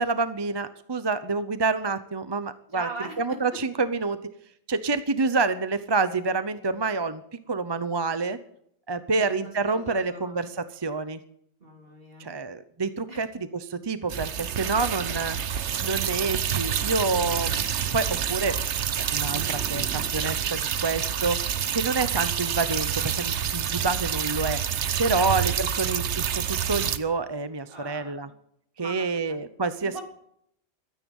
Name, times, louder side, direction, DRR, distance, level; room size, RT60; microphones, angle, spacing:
voice 1, 0.0-2.9 3.2-4.2 4.7-7.2 7.5-8.4 8.9-11.2 12.2-15.4 15.8-17.6 17.9-18.6 19.0-21.4 21.7-24.6 25.0-28.3 28.8-30.0, right 4 dB, 25° right, 12 dB, 0.7 m, -28 dB
voice 2, 2.7-3.6 9.1-10.5 11.6-12.3 13.1-13.3 25.1-25.4 27.7-28.3 28.8-29.4 29.9-30.0, right 2 dB, 55° right, 2 dB, 3.3 m, -41 dB
sound 1, 14.1-27.0, right 8 dB, 80° right, 1.2 m, -28 dB
16.0 x 13.0 x 5.5 m, 0.70 s
omnidirectional pair, 1.1 m